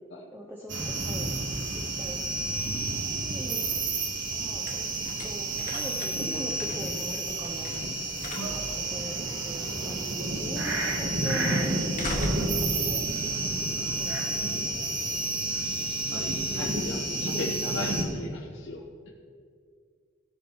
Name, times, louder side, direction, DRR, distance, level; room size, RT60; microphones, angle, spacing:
voice 1, 0.3-1.4 1.7-2.2 2.9-3.7 4.3-4.9 5.2-7.7 8.5-10.0 10.4-13.1 13.4-13.6 14.0-15.2, equal, 10° right, -1 dB, 0.8 m, -41 dB
sound 1, 0.7-18.0, right 2 dB, 60° right, 1.7 m, -30 dB
sound 2, 3.4-14.0, left 1 dB, 40° left, 1.4 m, -41 dB
voice 2, 8.4-8.8 15.6-15.7 16.1-19.1, left 2 dB, 55° left, -4 dB, 1.1 m, -37 dB
17.5 x 6.0 x 4.6 m, 2.2 s
head